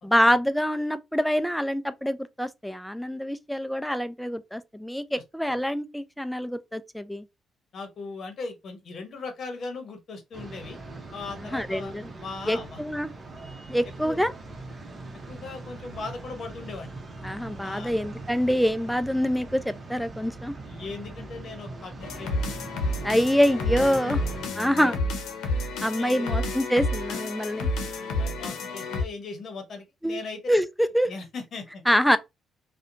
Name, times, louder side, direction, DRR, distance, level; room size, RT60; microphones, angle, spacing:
voice 1, 0.0-7.3 11.5-12.1 12.5-13.1 13.7-14.3 17.2-20.5 23.0-24.2 24.6-25.0 25.8-27.7 30.0-30.2 30.5-30.7 30.9-31.1 31.9-32.2, equal, ahead, 0.3 m, -25 dB
voice 2, 7.7-10.8 11.1-11.9 12.2-12.8 14.0-14.2 15.3-16.9 17.6-17.9 20.7-22.6 23.9-24.2 24.7-24.9 25.9-26.4 28.2-30.4 31.1-31.8, left 3 dB, 55° left, 0.8 m, -38 dB
sound 1, 10.3-24.5, right 2 dB, 35° right, 0.8 m, -41 dB
sound 2, 22.0-29.0, left 2 dB, 85° left, 0.7 m, -30 dB
2.8 x 2.1 x 2.5 m
cardioid pair, 90°, 0 cm